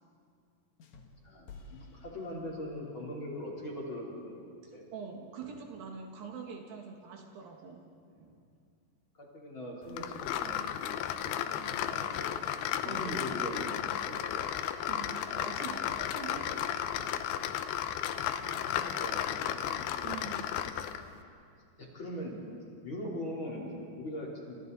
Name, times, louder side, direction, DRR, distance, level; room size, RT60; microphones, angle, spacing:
sound 1, 0.8-3.0, left 3 dB, 55° left, 2.5 m, -53 dB
voice 1, 1.2-4.8 9.1-12.3 12.8-13.8 14.1-14.4 18.3-19.9 21.8-22.5 22.8-24.6, equal, 30° left, -4 dB, 4.2 m, -41 dB
voice 2, 4.9-7.8 8.2-8.4 12.8-13.5 14.9-17.3 20.0-20.8, right 5 dB, 65° right, 2 dB, 3.3 m, -45 dB
sound 2, 10.0-21.1, left 10 dB, 80° left, 2.7 m, -34 dB
29.5 x 28.5 x 4.1 m, 2.4 s
omnidirectional pair, 4.5 m